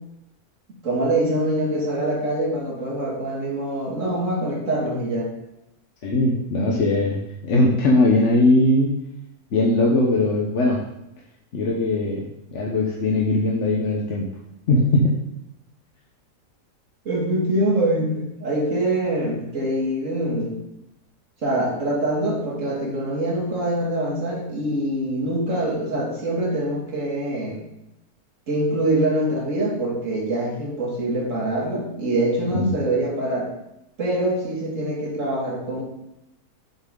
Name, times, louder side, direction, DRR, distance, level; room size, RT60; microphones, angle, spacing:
voice 1, 0.7-5.3 17.1-20.5 21.4-27.6 28.5-33.5 34.0-35.8, right 1 dB, 55° right, -2 dB, 2.3 m, -24 dB
voice 2, 6.0-9.0 9.5-10.8 11.5-14.3 14.7-15.2 32.5-32.8, left 2 dB, 55° left, -2 dB, 1.2 m, -20 dB
7.6 x 6.6 x 3.8 m, 0.86 s
omnidirectional pair, 1.6 m